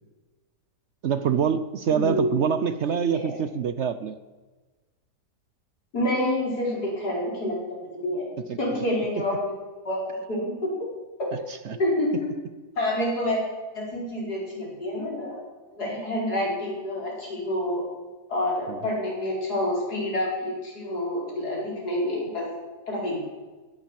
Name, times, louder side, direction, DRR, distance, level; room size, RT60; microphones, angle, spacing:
voice 1, 1.0-4.2 8.5-8.6 11.7-11.8 18.7-18.8, right 7 dB, 65° right, 12 dB, 0.7 m, -25 dB
voice 2, 1.9-2.3 3.1-3.4 5.9-8.3 8.6-9.5 9.9-10.7 11.8-12.3 12.8-13.4 13.7-15.4 15.7-17.8 18.3-22.5 22.9-23.2, left 1 dB, 70° left, -3 dB, 5.4 m, -28 dB
17.0 x 10.5 x 7.5 m, 1.3 s
omnidirectional pair, 1.8 m